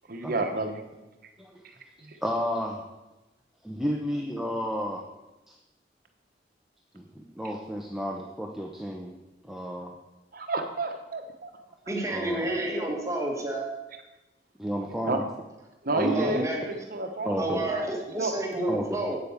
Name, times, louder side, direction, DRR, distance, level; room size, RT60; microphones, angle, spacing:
voice 1, 0.1-0.8 2.0-2.2 10.3-11.5 15.0-15.2 15.8-17.9 18.2-18.3, right 2 dB, 55° right, 5 dB, 1.1 m, -30 dB
voice 2, 2.2-2.9 3.6-5.0 5.5-5.6 6.9-9.1 9.4-9.9 12.1-12.5 14.6-15.2 15.9-16.4 17.2-17.6 18.7-19.0, equal, ahead, 0 dB, 0.8 m, -31 dB
voice 3, 11.9-13.6 16.1-16.7 17.4-19.2, right 1 dB, 15° right, 0 dB, 1.7 m, -30 dB
8.3 x 8.3 x 7.1 m, 1.1 s
head